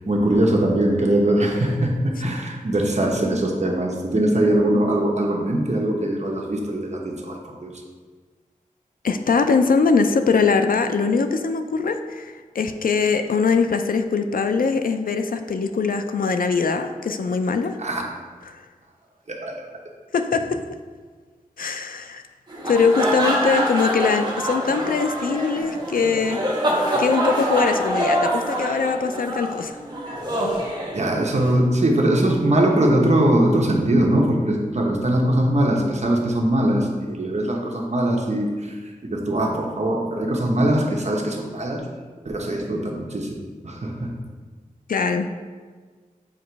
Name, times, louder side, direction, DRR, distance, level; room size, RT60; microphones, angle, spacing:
voice 1, 0.1-7.7 17.8-18.0 19.3-19.6 30.9-41.8 42.2-44.1, right 1 dB, 50° right, -1 dB, 1.0 m, -21 dB
voice 2, 9.0-17.8 18.5-18.6 20.1-20.6 21.6-22.2 22.7-26.4 27.0-29.8 44.9-45.3, left 4 dB, 80° left, 8 dB, 0.4 m, -22 dB
sound 1, 22.5-31.5, equal, 30° right, 1.3 m, -25 dB
7.3 x 3.0 x 4.6 m, 1.5 s
wide cardioid pair, 80°, 14 cm